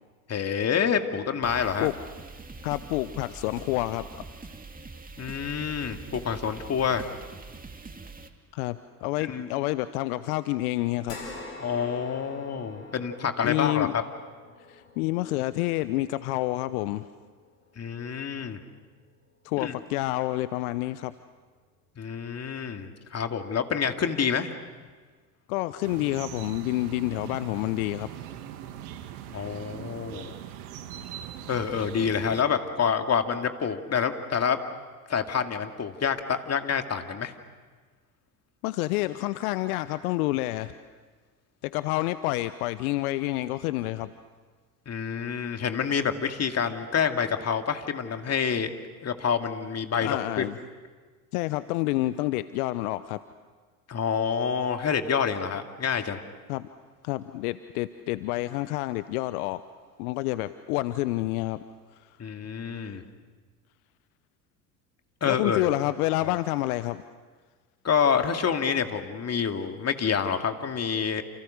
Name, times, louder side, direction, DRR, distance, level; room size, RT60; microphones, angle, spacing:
voice 1, 0.3-1.9 5.2-7.1 9.3-9.5 11.6-14.0 17.8-18.6 19.6-19.7 22.0-24.5 29.3-30.3 31.5-34.6 35.1-37.3 44.9-48.7 49.0-50.4 53.9-56.2 62.2-63.0 65.2-65.7 66.2-66.3 67.8-71.2, left 7 dB, 35° left, 6 dB, 2.4 m, -27 dB
sound 1, 1.4-8.3, right 3 dB, 20° right, 2.4 m, -44 dB
voice 2, 2.6-4.1 8.5-11.2 13.4-13.9 14.7-17.1 19.4-21.1 25.5-28.1 38.6-40.8 41.6-44.1 50.0-50.6 51.3-53.2 56.5-56.7 57.0-59.6 60.0-61.6 62.8-63.0 65.3-67.0, left 17 dB, 70° left, 14 dB, 0.9 m, -28 dB
sound 2, 11.1-19.7 20.1-20.2 21.7-21.8, left 3 dB, 85° left, 5.1 m, -47 dB
sound 3, 25.8-32.4, right 10 dB, 70° right, 2.1 m, -41 dB
29.5 x 29.0 x 6.5 m, 1.4 s
hypercardioid pair, 70°, 46 cm